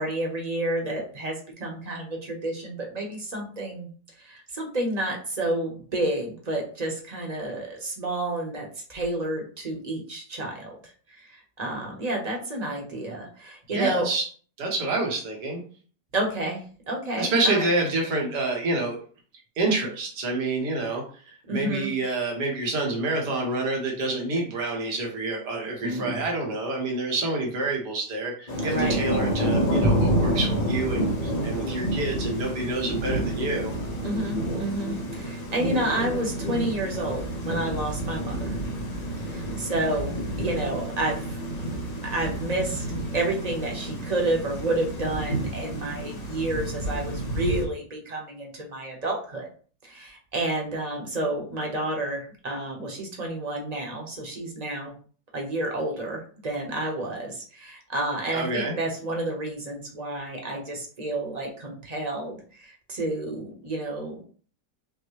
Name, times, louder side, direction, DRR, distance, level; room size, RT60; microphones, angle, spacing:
voice 1, 0.0-3.9 4.2-10.8 11.1-14.1 16.1-17.6 21.5-21.9 25.8-26.3 28.6-29.0 34.0-38.6 39.2-40.1 40.4-41.4 42.1-42.8 43.1-49.5 49.9-54.9 55.3-64.2, right 1 dB, 30° right, 0 dB, 0.9 m, -30 dB
voice 2, 13.7-14.2 14.6-15.6 17.2-19.0 19.6-33.7 58.3-58.7, right 2 dB, 75° right, 0 dB, 1.8 m, -28 dB
Thunder / Rain, 28.5-47.7, right 1 dB, 40° left, 0.6 m, -29 dB
5.9 x 2.2 x 3.1 m, 0.42 s
omnidirectional pair, 1.9 m